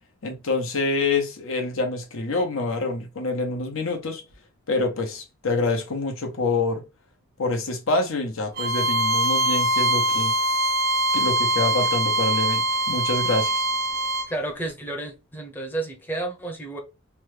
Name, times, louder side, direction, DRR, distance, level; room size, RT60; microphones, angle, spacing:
voice 1, 0.2-4.2 4.7-6.8 7.4-10.3 11.1-13.7, left 3 dB, 75° left, 0.8 m, -26 dB
Bowed string instrument, 8.6-14.3, right 1 dB, 45° right, 0.5 m, -23 dB
voice 2, 14.3-16.8, right 2 dB, 10° left, 0.6 m, -31 dB
2.9 x 2.2 x 3.2 m
head